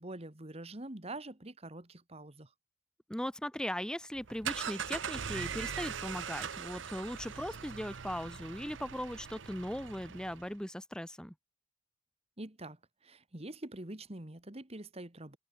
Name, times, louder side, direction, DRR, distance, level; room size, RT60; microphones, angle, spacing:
voice 1, 0.0-2.5 12.4-15.4, right 2 dB, 35° right, 2.0 m, -45 dB
voice 2, 3.1-11.3, equal, 5° left, 1.5 m, -39 dB
sound 1, 4.1-10.5, right 7 dB, 85° right, 0.8 m, -41 dB
head